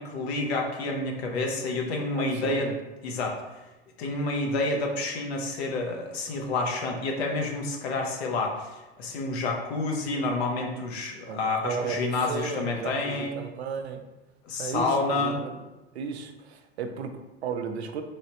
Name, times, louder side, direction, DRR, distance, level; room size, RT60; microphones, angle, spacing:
voice 1, 0.0-2.7 3.0-3.6 4.0-13.3 14.4-15.4, left 3 dB, 75° left, 1 dB, 0.8 m, -29 dB
voice 2, 2.1-2.7 11.3-14.0 14.6-15.6 15.9-18.0, right 6 dB, 85° right, 6 dB, 0.5 m, -34 dB
3.2 x 3.0 x 2.8 m, 1.1 s
hypercardioid pair, 85°, 32 cm